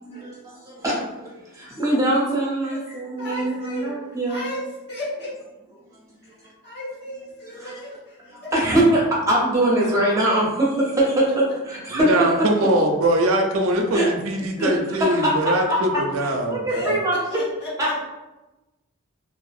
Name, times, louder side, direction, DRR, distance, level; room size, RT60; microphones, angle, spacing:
voice 1, 0.0-4.6 6.4-6.5 7.4-7.7 8.3-12.5 13.9-14.1 14.6-17.4 17.8-18.0, right 1 dB, 15° right, -5 dB, 0.6 m, -23 dB
voice 2, 3.2-3.9 4.3-4.6 4.9-5.3 6.6-7.9 16.7-17.7, left 1 dB, 50° left, -6 dB, 1.0 m, -33 dB
voice 3, 11.9-17.0, right 1 dB, 65° right, 3 dB, 0.4 m, -22 dB
2.6 x 2.4 x 2.4 m, 1.0 s
head